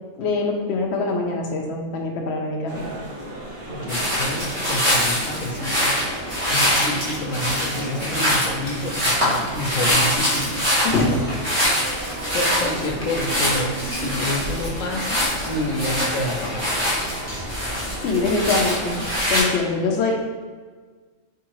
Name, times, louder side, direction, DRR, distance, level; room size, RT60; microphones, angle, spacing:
voice 1, 0.2-2.9 10.8-11.2 18.0-20.2, left 3 dB, 65° left, 1 dB, 0.9 m, -23 dB
sound 1, 2.7-19.4, right 1 dB, 45° right, 0.9 m, -35 dB
voice 2, 3.7-5.9 6.5-10.6 11.1-11.5 11.9-16.7, left 1 dB, 85° left, 0 dB, 1.1 m, -28 dB
sound 2, 3.9-19.4, equal, 25° right, 1.6 m, -24 dB
sound 3, 7.8-7.9 8.2-8.3 8.7-8.8 9.1-9.2 9.5-9.6 9.8-9.9 10.2-10.3 10.6-10.7 11.0-11.1 11.3-11.4 11.7-11.8 12.1-12.2 12.6-12.7 13.0-13.1 13.4-13.5 15.2-16.2, left 1 dB, 45° left, 1.4 m, -39 dB
4.7 x 3.6 x 3.0 m, 1.5 s
omnidirectional pair, 1.3 m